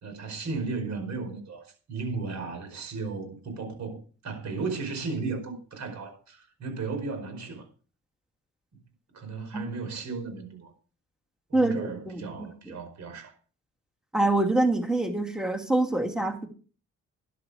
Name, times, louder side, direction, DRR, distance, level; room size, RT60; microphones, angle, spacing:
voice 1, 0.0-7.6 9.1-10.7 11.5-13.3, right 4 dB, 65° right, 4.8 m, -35 dB
voice 2, 11.5-12.5 14.1-16.5, right 2 dB, ahead, 2.3 m, -25 dB
12.0 x 11.0 x 4.9 m
cardioid pair, 90°, 30 cm